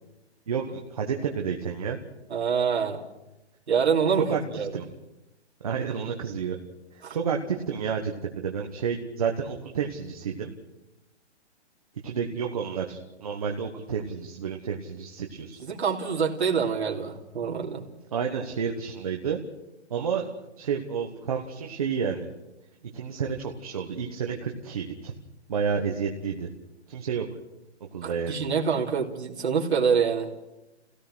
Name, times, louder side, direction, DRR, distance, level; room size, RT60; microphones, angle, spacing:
voice 1, 0.5-2.0 4.2-4.4 4.7-4.8 5.6-6.6 6.9-10.5 12.0-15.6 18.1-19.4 19.9-22.3 22.9-25.1 25.5-26.5 26.9-27.4 27.8-28.4, right 6 dB, 30° right, 2 dB, 1.3 m, -30 dB
voice 2, 2.3-3.0 3.7-4.7 7.0-7.2 15.6-17.8 28.0-30.3, right 6 dB, 70° right, -1 dB, 3.1 m, -26 dB
27.5 x 17.0 x 6.2 m, 0.97 s
hypercardioid pair, 180°, 34 cm